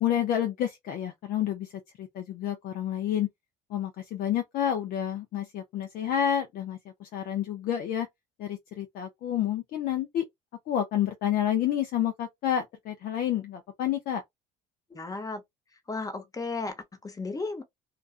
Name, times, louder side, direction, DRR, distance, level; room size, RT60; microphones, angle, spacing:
voice 1, 0.0-1.7 2.0-3.3 3.7-8.1 8.4-10.2 10.7-14.2, left 10 dB, 55° left, 0.5 m, -29 dB
voice 2, 14.9-15.4 15.9-17.6, left 3 dB, 20° left, 0.8 m, -34 dB
2.4 x 2.3 x 2.4 m
hypercardioid pair, 75°, 18 cm